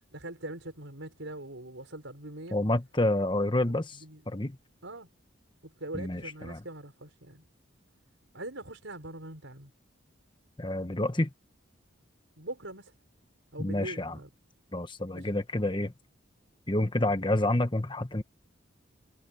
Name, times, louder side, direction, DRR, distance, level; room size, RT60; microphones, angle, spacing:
voice 1, 0.1-2.6 4.0-4.2 4.8-5.1 5.6-7.4 8.3-9.7 12.4-12.9 13.5-14.3 15.1-15.3, right 1 dB, 70° right, 5.4 m, -42 dB
voice 2, 2.5-4.0 4.3-4.6 6.0-6.6 10.6-11.3 13.6-14.2 14.7-15.9 16.7-18.2, left 1 dB, 25° left, 1.3 m, -28 dB
head